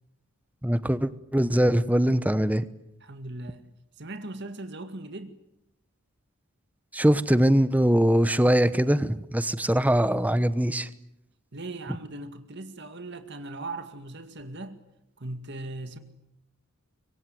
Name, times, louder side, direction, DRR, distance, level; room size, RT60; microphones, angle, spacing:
voice 1, 0.6-2.7 6.9-10.9, equal, 5° right, 1.0 m, -22 dB
voice 2, 3.0-3.6 4.0-5.4 11.5-14.8 15.2-16.0, right 2 dB, 55° right, 2.1 m, -39 dB
25.5 x 23.5 x 9.4 m
head